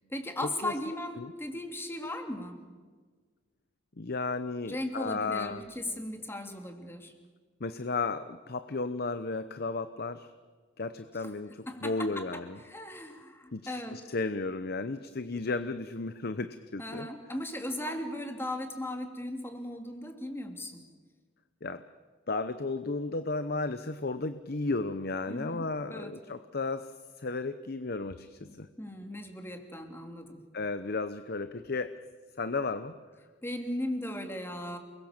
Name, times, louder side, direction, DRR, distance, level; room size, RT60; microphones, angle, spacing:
voice 1, 0.1-2.6 4.7-7.1 11.1-11.3 11.7-14.0 16.8-20.8 25.3-26.2 28.4-30.4 33.4-34.8, left 1 dB, 10° left, 5 dB, 2.7 m, -37 dB
voice 2, 4.0-5.6 7.6-10.3 10.8-12.6 13.5-17.1 21.6-21.8 22.3-26.9 27.2-28.7 30.5-31.9 32.4-33.0, left 3 dB, 55° left, 11 dB, 0.8 m, -34 dB
29.0 x 21.5 x 7.3 m, 1.5 s
head